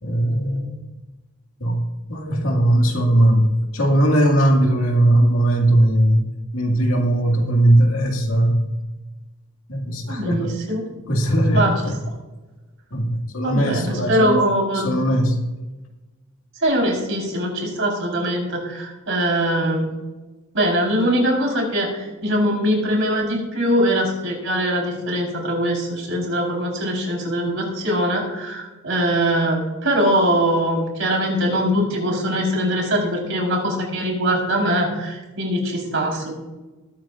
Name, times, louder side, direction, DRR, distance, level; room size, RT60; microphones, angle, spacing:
voice 1, 0.0-0.8 1.6-1.8 2.1-6.2 6.5-8.6 9.7-10.5 11.1-11.7 12.9-14.4 14.8-15.4, right 1 dB, 70° left, 1 dB, 2.2 m, -18 dB
voice 2, 10.1-10.8 11.5-11.7 13.4-15.0 16.6-19.9 20.5-36.3, equal, 60° right, 0 dB, 4.3 m, -22 dB
21.0 x 9.9 x 2.5 m, 1.2 s
head